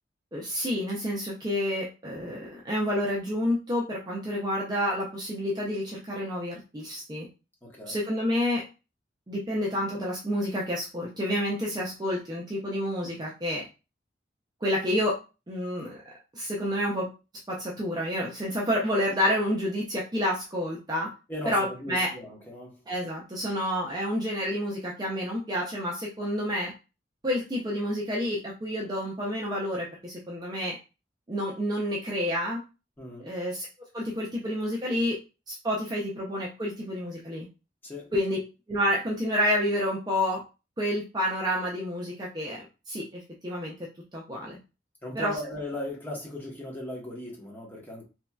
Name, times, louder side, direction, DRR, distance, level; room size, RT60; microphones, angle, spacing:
voice 1, 0.3-7.3 7.9-8.6 9.3-13.6 14.6-15.2 15.5-16.0 16.3-17.1 17.5-21.1 21.4-22.1 22.9-26.7 27.2-30.8 31.3-32.6 33.2-33.6 33.9-35.2 35.5-37.5 38.1-38.4 38.7-40.4 40.8-44.6 45.2-45.3, equal, 25° right, -3 dB, 0.5 m, -29 dB
voice 2, 7.6-8.0 21.3-22.9 33.0-33.3 37.8-38.1 45.0-48.0, left 1 dB, 10° left, -3 dB, 1.0 m, -37 dB
2.9 x 2.7 x 2.2 m, 0.30 s
head